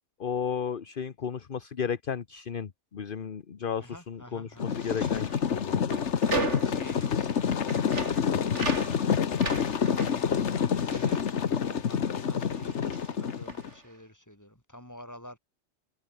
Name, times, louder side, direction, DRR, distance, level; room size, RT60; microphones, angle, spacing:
voice 1, 0.2-6.0, left 7 dB, 50° left, 1.2 m, -34 dB
voice 2, 3.8-4.8 6.6-8.6 9.0-9.2 9.5-11.2 11.6-15.4, equal, 15° left, 6.1 m, -49 dB
sound 1, 4.6-13.7, left 7 dB, 80° left, 1.5 m, -28 dB
sound 2, 4.6-12.2 12.4-13.9, right 2 dB, 85° right, 4.5 m, -37 dB
omnidirectional pair, 1.2 m